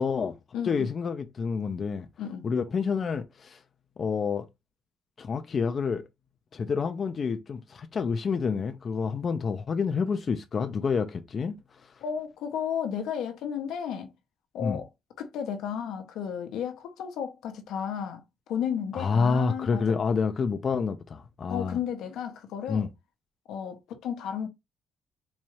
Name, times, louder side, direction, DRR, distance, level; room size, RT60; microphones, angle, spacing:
voice 1, 0.0-0.3 0.6-2.1 2.4-3.6 4.0-4.4 5.2-6.0 6.5-11.5 14.6-14.8 18.9-21.8 22.7-22.9, left 5 dB, 45° left, 0.4 m, -28 dB
voice 2, 0.5-0.9 2.2-2.4 12.0-14.1 14.5-14.9 15.2-20.0 21.5-22.9 23.5-24.5, left 8 dB, 85° left, 0.8 m, -33 dB
4.1 x 2.3 x 3.0 m
cardioid pair, 90°, 0 cm